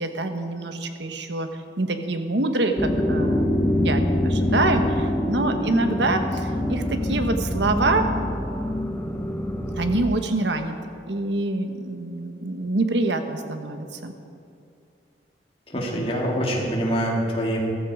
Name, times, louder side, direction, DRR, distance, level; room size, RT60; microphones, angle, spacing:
voice 1, 0.0-1.5 1.8-8.0 9.8-10.7 11.1-14.2, right 2 dB, 80° right, 7 dB, 1.2 m, -25 dB
sound 1, 2.8-10.0, left 1 dB, 10° left, 0.7 m, -25 dB
voice 2, 15.7-17.6, equal, 30° left, -2 dB, 2.4 m, -25 dB
14.5 x 14.0 x 4.9 m, 2.5 s
head